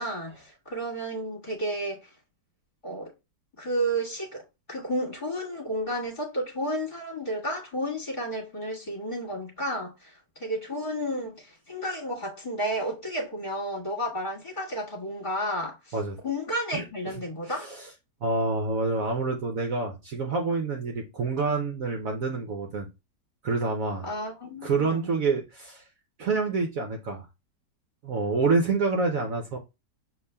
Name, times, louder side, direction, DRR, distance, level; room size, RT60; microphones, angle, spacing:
voice 1, 0.0-2.1 2.8-3.1 3.6-15.9 16.2-17.7 24.0-25.1, equal, 30° left, 1.6 m, -32 dB
voice 2, 16.7-17.1 17.6-17.9 18.2-22.9 23.4-24.1 24.6-25.8 26.2-27.3 28.0-29.6, right 3 dB, 60° right, 1.0 m, -27 dB
6.9 x 2.9 x 2.2 m
omnidirectional pair, 1.8 m